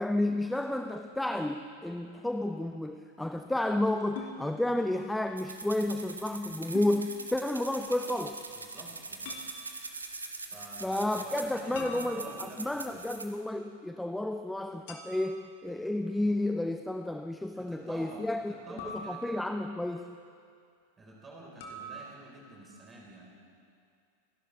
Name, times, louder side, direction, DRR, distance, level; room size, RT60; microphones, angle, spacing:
voice 1, 0.0-8.4 10.8-20.2, left 1 dB, 5° left, 7 dB, 0.4 m, -31 dB
sound 1, 4.2-4.4 6.7-7.0 9.2-9.5 11.7-12.7 14.9-15.5 18.8-19.7 21.6-22.0, left 1 dB, 50° left, 1.9 m, -43 dB
sound 2, 5.4-13.3, right 3 dB, 80° right, 1.0 m, -43 dB
voice 2, 8.5-9.4 10.5-13.1 17.5-19.4 21.0-23.3, right 2 dB, 15° right, -3 dB, 4.2 m, -49 dB
28.0 x 11.5 x 3.3 m, 2.4 s
figure-of-eight pair, 90°, 0 cm